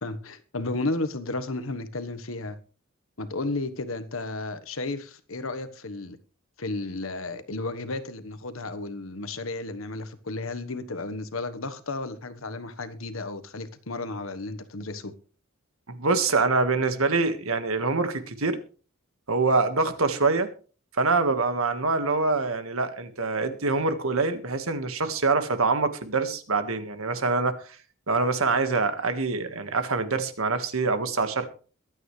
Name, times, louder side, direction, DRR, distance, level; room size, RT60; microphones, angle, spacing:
voice 1, 0.0-2.6 3.2-6.2 6.6-15.1, left 2 dB, 75° left, 1.3 m, -33 dB
voice 2, 15.9-18.6 19.3-20.5 21.0-27.6 28.1-31.5, right 3 dB, 85° right, 1.7 m, -25 dB
22.5 x 9.0 x 3.3 m
head